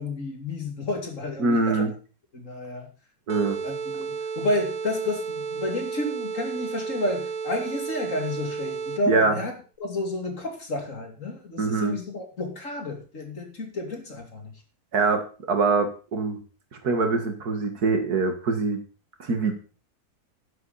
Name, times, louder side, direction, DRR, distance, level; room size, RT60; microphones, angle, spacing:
voice 1, 0.0-1.9 2.3-2.9 3.6-9.5 9.8-14.5, left 2 dB, 55° left, 3 dB, 2.9 m, -31 dB
voice 2, 1.4-1.9 3.3-3.6 9.1-9.4 11.6-12.0 14.9-16.4 16.8-18.8 19.2-19.5, right 3 dB, 80° right, 6 dB, 2.4 m, -23 dB
sound 1, 3.3-9.2, right 5 dB, 50° right, 0.5 m, -32 dB
11.0 x 10.5 x 4.2 m, 0.36 s
omnidirectional pair, 1.6 m